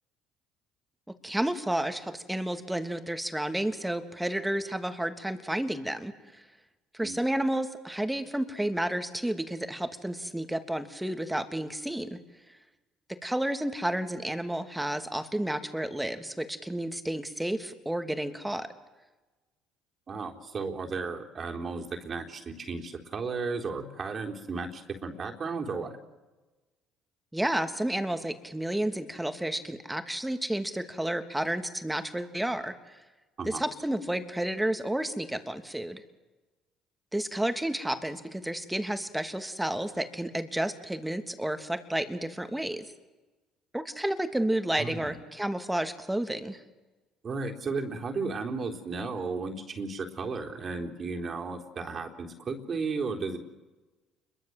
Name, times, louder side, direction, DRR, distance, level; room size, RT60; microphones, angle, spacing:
voice 1, 1.2-6.1 6.9-12.2 13.2-18.7 27.3-32.7 33.5-36.0 37.1-42.8 43.7-46.6, right 1 dB, 5° right, 8 dB, 3.0 m, -31 dB
voice 2, 20.1-26.0 33.4-33.6 44.8-45.2 47.2-53.4, right 4 dB, 40° right, 3 dB, 3.9 m, -34 dB
29.0 x 22.5 x 7.8 m, 1.2 s
hypercardioid pair, 65°, 0 cm